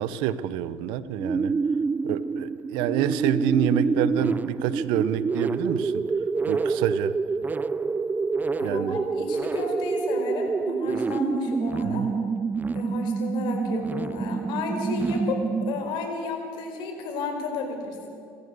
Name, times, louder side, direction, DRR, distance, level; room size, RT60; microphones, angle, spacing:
voice 1, 0.0-1.5 2.0-6.0 6.5-7.2 8.6-9.0 11.8-12.1, right 10 dB, 75° right, 15 dB, 1.0 m, -27 dB
sound 1, 1.2-16.1, right 4 dB, 20° right, 0.5 m, -27 dB
voice 2, 8.6-12.0 12.7-18.1, left 3 dB, 70° left, 4 dB, 4.7 m, -32 dB
28.5 x 14.0 x 6.9 m, 2.6 s
supercardioid pair, 80°, 8 cm